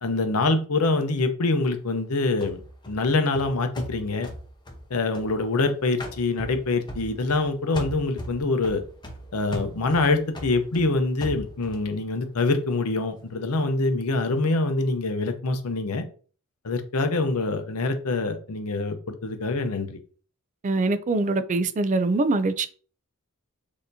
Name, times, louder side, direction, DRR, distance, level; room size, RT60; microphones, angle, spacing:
voice 1, 0.0-2.6 2.9-4.3 4.9-8.8 9.3-16.0 16.6-20.0, left 3 dB, 75° left, 0.7 m, -25 dB
sound 1, 2.4-5.6 6.0-7.5 7.7-11.9, equal, 20° left, 0.8 m, -38 dB
voice 2, 20.6-22.7, right 3 dB, 35° right, 0.4 m, -23 dB
6.5 x 2.8 x 2.7 m
head